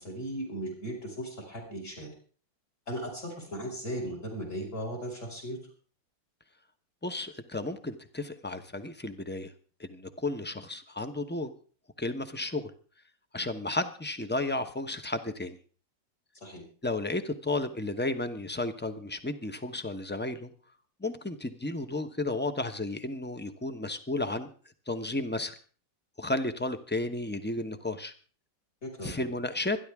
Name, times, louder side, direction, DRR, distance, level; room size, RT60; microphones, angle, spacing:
voice 1, 0.0-2.1 2.9-5.6 16.4-16.6 28.8-29.3, equal, 40° left, -1 dB, 5.8 m, -37 dB
voice 2, 7.0-9.5 9.8-11.5 12.0-12.7 13.3-15.6 16.8-20.5 21.0-24.5 24.9-25.6 26.2-28.1 29.0-29.8, left 2 dB, 10° left, 9 dB, 0.5 m, -33 dB
26.0 x 11.0 x 3.6 m, 0.41 s
omnidirectional pair, 1.9 m